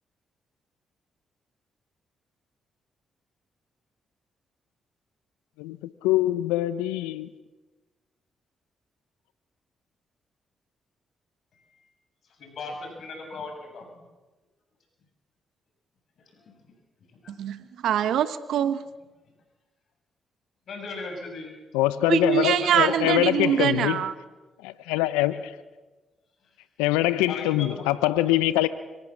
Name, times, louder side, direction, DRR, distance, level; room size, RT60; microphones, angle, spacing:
voice 1, 6.0-7.3 21.7-24.0 24.6-25.5 26.8-28.7, left 15 dB, 85° left, 0.6 m, -24 dB
voice 2, 11.5-11.9 12.4-14.0 16.5-16.7 17.2-17.4 20.7-21.5 22.2-23.1 23.4-23.8 27.3-28.2, left 3 dB, 65° left, 7.4 m, -38 dB
voice 3, 17.4-18.8 22.1-24.1, right 9 dB, 75° right, 1.2 m, -24 dB
24.5 x 17.0 x 7.3 m
hypercardioid pair, 45°, 0 cm